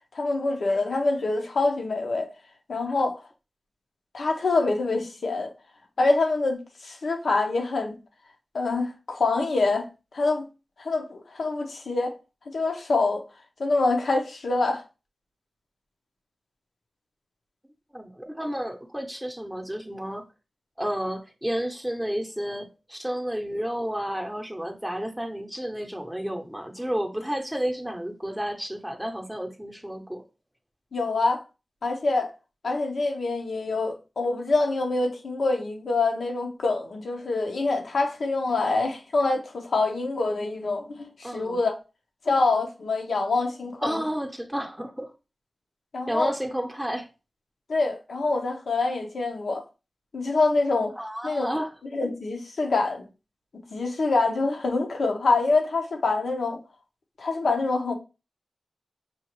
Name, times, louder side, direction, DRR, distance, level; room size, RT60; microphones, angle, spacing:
voice 1, 0.1-2.3 2.7-3.1 4.1-5.5 6.0-8.0 8.5-9.9 10.1-10.4 10.8-12.1 12.5-13.2 13.6-14.8 30.9-31.4 31.8-32.3 32.6-41.7 42.2-44.0 45.9-46.3 47.7-49.6 50.1-50.9 51.2-51.5 51.9-53.1 53.5-56.6 57.2-57.9, left 3 dB, 85° left, 0.9 m, -25 dB
voice 2, 17.9-20.3 20.8-30.2 41.2-41.6 43.8-45.1 46.1-47.1 51.0-51.7, equal, 5° right, 0.7 m, -31 dB
5.4 x 2.5 x 3.1 m
wide cardioid pair, 65°, 0 cm